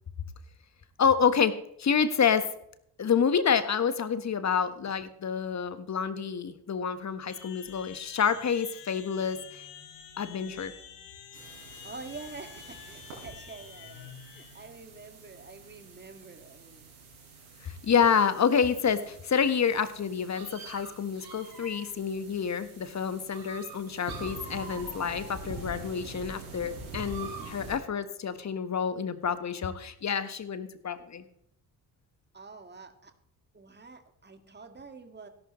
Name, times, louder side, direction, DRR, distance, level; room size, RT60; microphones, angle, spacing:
voice 1, 1.0-2.5 3.0-9.6 10.2-10.7 17.6-31.2, left 7 dB, 35° left, 12 dB, 1.4 m, -28 dB
sound 1, 7.3-14.7, left 9 dB, 60° left, 1.8 m, -49 dB
sound 2, 11.3-27.8, right 3 dB, 75° right, 6.1 m, -46 dB
voice 2, 11.7-16.9 32.3-33.1 33.5-35.3, right 4 dB, 20° right, 7 dB, 2.0 m, -47 dB
sound 3, 17.9-18.0 18.9-19.0 19.9-20.0 20.3-22.1 22.9-23.0 23.3-26.1 26.9-27.5, right 5 dB, 55° right, 5.8 m, -45 dB
17.5 x 11.5 x 3.2 m, 0.73 s
figure-of-eight pair, 50°, 46 cm